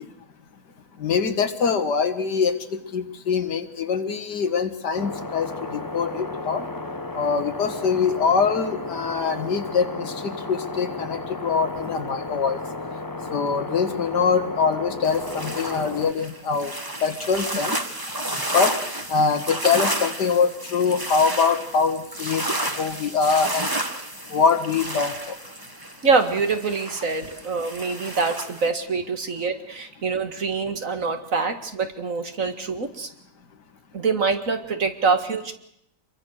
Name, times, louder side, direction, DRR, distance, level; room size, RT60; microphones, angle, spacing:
voice 1, 1.0-2.5 2.9-6.6 7.1-12.6 13.3-16.7 17.0-17.8 18.5-18.7 19.1-22.5 22.8-23.7 24.3-25.1, left 5 dB, 85° left, 8 dB, 2.3 m, -23 dB
sound 1, 4.9-16.1, left 2 dB, 15° left, 0.8 m, -33 dB
sound 2, 15.0-28.7, right 1 dB, 15° right, 1.7 m, -31 dB
voice 2, 26.0-33.1 33.9-35.5, right 4 dB, 55° right, 7 dB, 2.2 m, -25 dB
27.0 x 22.5 x 6.5 m, 0.73 s
omnidirectional pair, 1.7 m